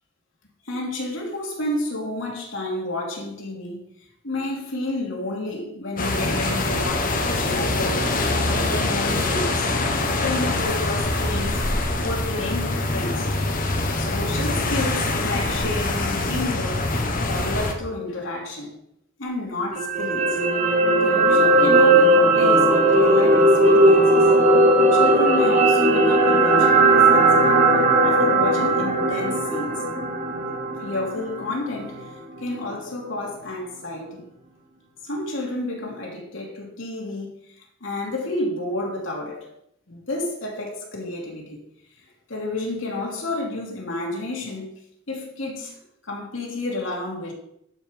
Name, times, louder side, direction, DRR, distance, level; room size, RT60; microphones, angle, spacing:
voice 1, 0.6-3.9 4.2-9.7 10.1-13.3 14.0-16.9 17.2-18.8 19.2-20.4 21.0-24.3 24.9-27.7 28.0-29.8 30.8-32.1 32.4-34.3 35.0-39.5 39.9-41.6 42.0-44.7 45.1-47.3, left 2 dB, 75° left, 2.9 m, -30 dB
sound 1, 6.0-17.7, left 2 dB, 45° left, 1.3 m, -24 dB
sound 2, 19.7-32.0 32.4-32.5, right 2 dB, 40° right, 2.2 m, -17 dB
12.0 x 5.7 x 5.3 m
head